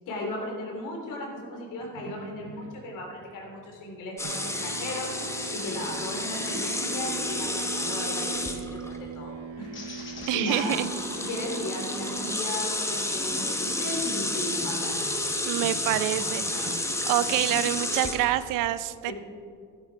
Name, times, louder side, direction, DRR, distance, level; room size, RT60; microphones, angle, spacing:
voice 1, 0.0-5.1 5.5-8.6 8.9-10.8 11.2-15.0 16.1-16.7 17.9-18.0 19.1-19.2, left 1 dB, 80° left, 1 dB, 3.3 m, -36 dB
sound 1, 1.8-4.0 4.2-18.2, right 6 dB, 50° right, 0.9 m, -42 dB
sound 2, 4.2-9.0 10.1-10.3 10.5-18.4, left 2 dB, 10° left, 0.9 m, -31 dB
sound 3, 9.7-15.3 15.8-17.0, left 2 dB, 40° left, 2.9 m, -46 dB
voice 2, 10.3-10.9 15.4-16.4 17.1-19.1, right 14 dB, 80° right, 14 dB, 0.6 m, -26 dB
12.5 x 11.5 x 4.8 m, 2.2 s
cardioid pair, 135°, 31 cm